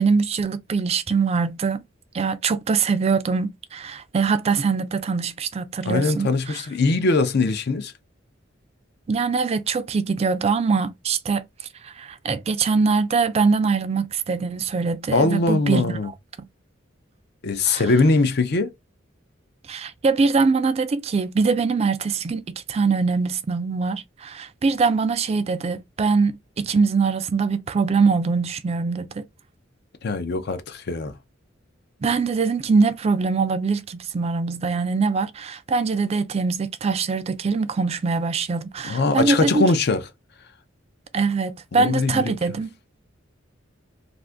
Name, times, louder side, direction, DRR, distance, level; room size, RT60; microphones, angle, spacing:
voice 1, 0.0-1.8 2.1-6.6 9.1-11.4 11.8-16.0 17.6-17.8 19.7-29.2 32.0-39.7 41.1-42.7, right 4 dB, 30° right, 0.3 m, -23 dB
voice 2, 5.9-7.9 15.1-16.1 17.4-18.7 30.0-31.1 38.8-40.0 41.7-42.3, left 3 dB, 55° left, 0.5 m, -21 dB
2.5 x 2.5 x 3.4 m
head